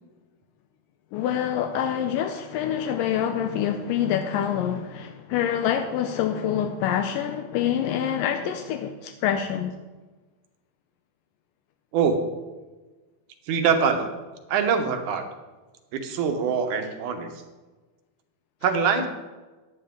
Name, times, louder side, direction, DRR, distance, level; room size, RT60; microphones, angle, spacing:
voice 1, 1.1-9.8 19.0-19.1, left 9 dB, 80° left, 2.2 m, -26 dB
voice 2, 13.5-14.1 14.5-15.2 15.9-17.3 18.6-19.1, right 6 dB, 65° right, 2.3 m, -23 dB
15.0 x 10.5 x 3.7 m
omnidirectional pair, 4.2 m